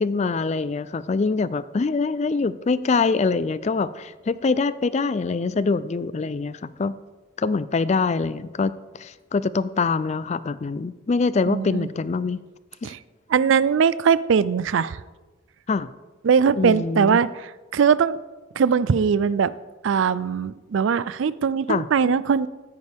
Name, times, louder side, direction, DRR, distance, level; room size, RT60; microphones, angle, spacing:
voice 1, 0.0-7.0 7.4-12.4 12.8-12.9 15.7-15.9 16.6-17.2 21.7-21.9, left 4 dB, 35° left, 16 dB, 0.3 m, -24 dB
voice 2, 11.5-11.9 12.8-13.0 13.3-15.0 16.2-17.3 17.7-18.2 18.6-19.5 19.8-22.5, right 6 dB, 70° right, 18 dB, 0.4 m, -20 dB
16.0 x 9.5 x 3.5 m, 1.2 s
head